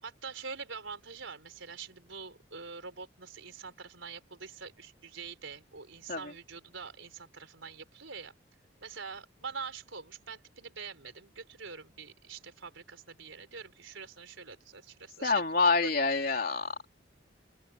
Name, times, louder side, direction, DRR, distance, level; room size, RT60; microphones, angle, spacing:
voice 1, 0.0-8.3 8.8-15.3 15.8-15.9, right 5 dB, 85° right, 4.5 m, -45 dB
voice 2, 15.2-16.9, left 4 dB, 50° left, 3.5 m, -27 dB
open air
head